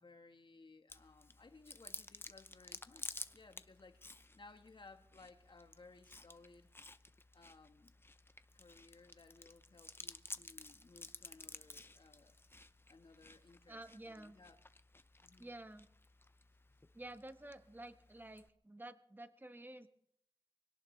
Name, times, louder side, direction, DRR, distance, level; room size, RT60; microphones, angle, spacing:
voice 1, 0.0-6.7 7.3-7.9 8.5-12.4 12.9-14.6 15.2-15.5, left 3 dB, 50° left, 1.4 m, -61 dB
Chewing mastication, 0.9-18.5, left 2 dB, 20° left, 0.7 m, -54 dB
voice 2, 13.7-14.4 15.4-15.9 16.9-19.9, right 1 dB, 20° right, 1.3 m, -51 dB
24.0 x 18.0 x 3.3 m
wide cardioid pair, 70°, 10 cm